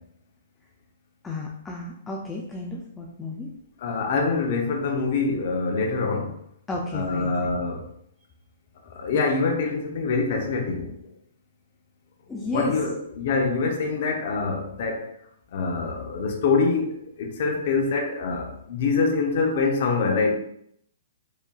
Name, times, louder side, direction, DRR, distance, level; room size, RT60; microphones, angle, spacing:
voice 1, 1.2-3.5 6.7-7.3 12.3-12.8, left 2 dB, 10° left, -2 dB, 0.4 m, -32 dB
voice 2, 3.8-6.3 6.9-7.8 8.9-10.9 12.4-15.1 15.5-16.9 17.2-20.3, left 4 dB, 50° left, 3 dB, 0.8 m, -25 dB
4.9 x 2.7 x 2.4 m, 0.72 s
hypercardioid pair, 160°, 0 cm